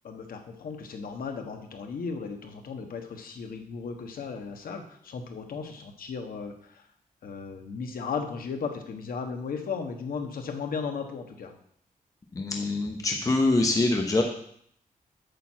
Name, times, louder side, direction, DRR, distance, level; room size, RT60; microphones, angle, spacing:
voice 1, 0.0-6.9 7.2-11.5, left 5 dB, 80° left, 4 dB, 1.3 m, -36 dB
voice 2, 12.3-14.2, left 2 dB, 25° left, 3 dB, 0.8 m, -24 dB
8.3 x 4.5 x 7.3 m, 0.66 s
wide cardioid pair, 175°, 15 cm